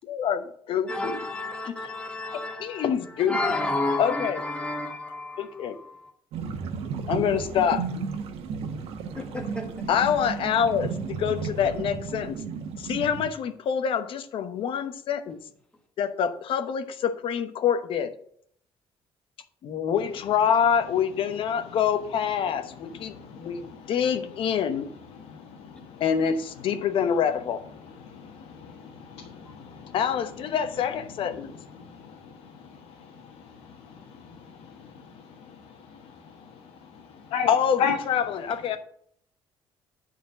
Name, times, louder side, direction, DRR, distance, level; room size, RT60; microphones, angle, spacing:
voice 1, 0.0-1.2 1.6-1.8 2.3-3.4 4.0-4.4 5.4-5.8 7.1-7.8 9.9-12.4 12.8-15.4 16.0-18.1 19.6-24.9 26.0-27.7 29.9-31.5 37.5-38.8, left 8 dB, 60° left, 10 dB, 1.0 m, -26 dB
voice 2, 0.9-2.9 3.3-6.0 9.1-9.6, left 2 dB, 10° left, 2 dB, 1.6 m, -31 dB
sound 1, 6.3-13.3, right 5 dB, 80° right, 1.2 m, -33 dB
voice 3, 23.1-23.5 25.3-25.4 29.1-29.9 37.3-37.5 37.8-37.9, left 7 dB, 85° left, 0 dB, 1.4 m, -30 dB
9.7 x 4.4 x 6.4 m, 0.64 s
cardioid pair, 125°, 10 cm